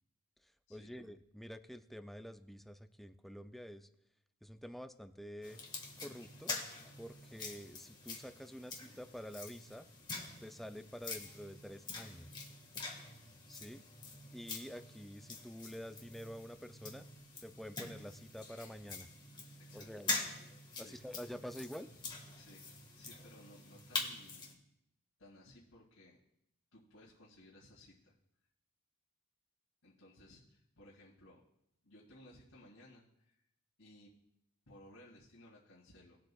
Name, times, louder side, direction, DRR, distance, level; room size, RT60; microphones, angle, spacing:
voice 1, 0.4-3.9 4.4-5.6 6.0-6.5 7.0-9.9 10.4-12.4 13.5-13.8 14.3-17.1 17.4-19.1 19.7-20.1 20.8-21.9, equal, ahead, 9 dB, 0.4 m, -48 dB
sound 1, 5.4-24.5, left 3 dB, 20° left, 1.6 m, -45 dB
voice 2, 19.6-20.3 20.7-21.0 22.4-22.7 22.9-24.6 25.2-26.2 26.7-28.1 29.8-31.4 31.8-33.4 33.8-34.1 34.7-36.2, left 1 dB, 85° left, -7 dB, 2.3 m, -59 dB
19.5 x 7.8 x 2.3 m, 0.80 s
head